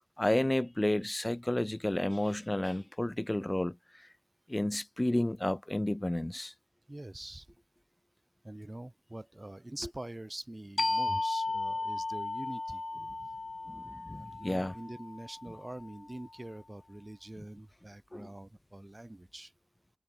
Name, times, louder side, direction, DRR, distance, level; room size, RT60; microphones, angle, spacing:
voice 1, 0.2-3.8 4.5-6.5 13.7-14.7 18.1-18.3, left 1 dB, 20° left, 0.6 m, -31 dB
voice 2, 6.9-7.5 8.4-12.8 14.1-19.5, right 1 dB, 25° right, 4.4 m, -45 dB
sound 1, 10.8-16.1, left 3 dB, 50° left, 1.2 m, -35 dB
wide cardioid pair, 75°, 0 cm